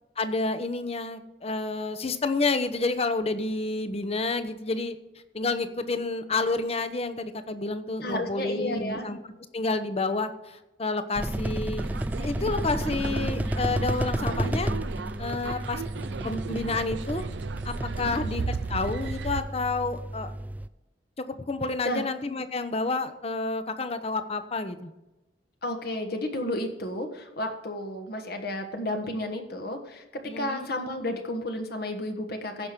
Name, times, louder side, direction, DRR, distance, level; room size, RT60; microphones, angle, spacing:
voice 1, 0.2-4.9 5.3-9.2 9.5-11.8 12.2-14.7 15.2-15.8 16.2-17.2 17.6-20.3 21.2-24.9 30.3-30.7, left 3 dB, 35° left, 10 dB, 0.9 m, -29 dB
voice 2, 8.0-9.1 14.3-14.5 18.0-18.2 21.8-22.0 25.6-32.7, left 1 dB, 60° left, 4 dB, 1.5 m, -32 dB
sound 1, 11.2-20.7, right 1 dB, 10° right, 0.3 m, -32 dB
sound 2, 11.8-19.4, right 5 dB, 75° right, 0.5 m, -36 dB
15.5 x 6.0 x 5.1 m, 1.0 s
head